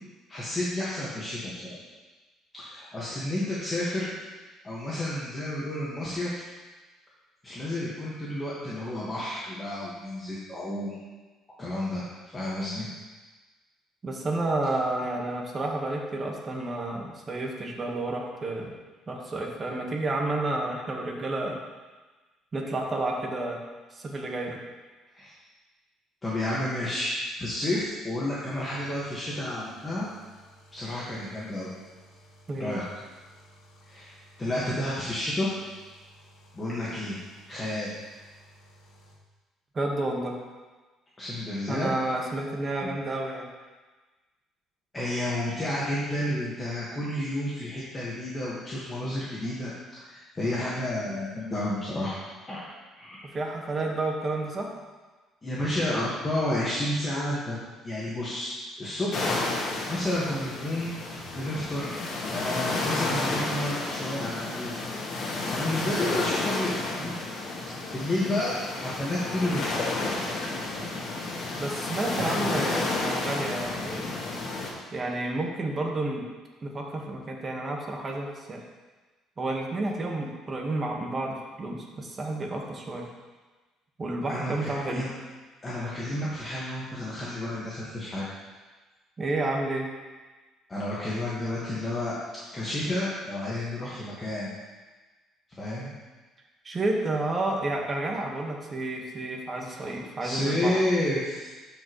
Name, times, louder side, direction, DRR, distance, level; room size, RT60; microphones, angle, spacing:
voice 1, 0.3-1.8 2.5-4.1 4.6-6.4 7.4-11.0 11.6-12.1 12.3-12.9 25.1-25.3 26.2-27.1 27.4-30.1 30.7-31.7 32.6-32.8 33.8-35.5 36.5-37.2 37.5-37.9 41.2-41.9 42.8-42.9 44.9-52.2 52.5-52.6 53.0-53.2 55.4-57.6 57.8-58.5 58.8-59.3 59.9-60.9 61.3-61.9 62.3-64.9 65.5-67.1 67.9-69.7 72.1-72.4 84.3-85.1 85.6-88.3 90.7-92.2 92.5-94.5 95.6-95.9 99.7-101.5, left 1 dB, 20° left, -8 dB, 1.7 m, -31 dB
voice 2, 14.0-18.7 19.1-21.6 22.5-23.6 23.9-24.6 32.5-32.8 39.7-40.3 41.7-43.5 53.3-54.7 71.6-74.1 74.9-76.3 76.6-78.6 79.4-83.1 84.0-85.0 89.2-89.9 96.6-100.8, right 2 dB, 30° right, 0 dB, 1.5 m, -30 dB
sound 1, 28.3-39.2, right 1 dB, 65° left, 1.5 m, -56 dB
sound 2, 59.1-74.7, left 2 dB, 50° left, 1.7 m, -31 dB
12.0 x 5.2 x 3.2 m, 1.3 s
cardioid pair, 105°, 0 cm